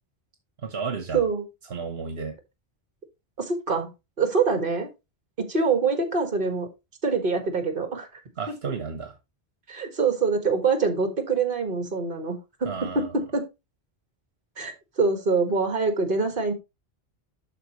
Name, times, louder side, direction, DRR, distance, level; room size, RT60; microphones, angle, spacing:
voice 1, 0.6-1.2 1.7-2.3 8.4-9.1 12.6-13.1, right 5 dB, 80° right, 1.4 m, -32 dB
voice 2, 1.1-1.4 3.4-3.9 4.2-4.9 5.4-6.7 7.0-8.1 8.6-8.8 9.7-13.5 14.6-16.5, right 4 dB, 55° right, 1.8 m, -25 dB
12.0 x 4.4 x 3.0 m
omnidirectional pair, 1.1 m